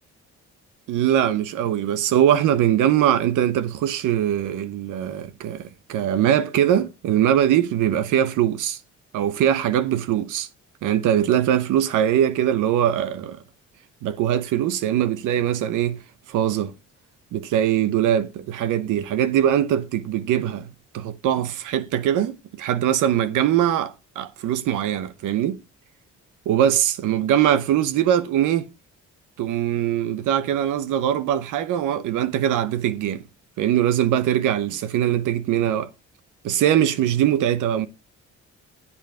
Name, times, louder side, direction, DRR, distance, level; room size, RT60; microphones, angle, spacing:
voice 1, 0.9-8.8 9.1-10.5 10.8-13.4 14.0-16.0 16.3-16.7 17.3-25.6 26.5-28.6 29.4-33.2 33.6-35.9 36.4-37.9, right 10 dB, 85° right, 0.9 m, -22 dB
10.5 x 7.2 x 3.5 m
cardioid pair, 90°, 30 cm